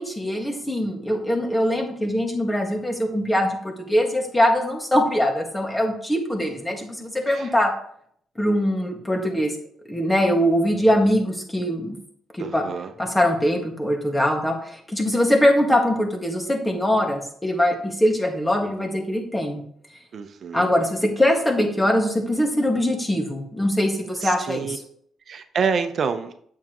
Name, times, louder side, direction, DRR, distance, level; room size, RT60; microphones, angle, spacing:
voice 1, 0.0-3.6 3.9-7.7 8.4-9.5 9.9-12.0 12.3-12.6 13.0-19.6 20.5-24.7, equal, 10° left, 2 dB, 1.8 m, -22 dB
voice 2, 12.4-12.9 20.1-20.7 24.2-24.8 25.3-26.3, right 6 dB, 55° right, 8 dB, 0.7 m, -27 dB
8.7 x 7.1 x 3.0 m, 0.64 s
cardioid pair, 90°, 0 cm